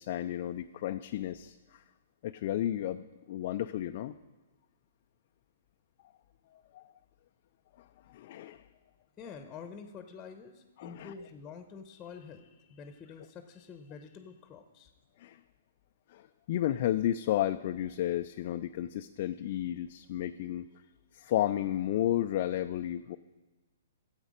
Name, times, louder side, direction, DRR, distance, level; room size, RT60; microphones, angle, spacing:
voice 1, 0.0-1.5 2.2-4.1 6.7-6.8 8.1-8.6 10.8-11.1 15.2-15.4 16.1-20.7 21.1-23.2, left 12 dB, 50° left, 7 dB, 0.4 m, -32 dB
voice 2, 9.2-14.9, left 6 dB, 20° left, 7 dB, 0.9 m, -47 dB
13.5 x 8.0 x 5.1 m, 1.2 s
figure-of-eight pair, 120°, 0 cm